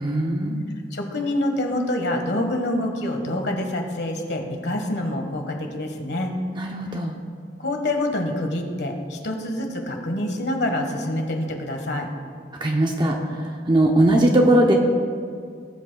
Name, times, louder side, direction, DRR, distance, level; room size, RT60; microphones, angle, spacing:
voice 1, 0.0-0.6 6.6-7.2 12.6-14.7, right 1 dB, 25° right, 1 dB, 0.7 m, -20 dB
voice 2, 0.9-6.3 7.6-12.1, left 1 dB, 65° left, 3 dB, 1.4 m, -26 dB
18.5 x 8.0 x 2.3 m, 2.2 s
head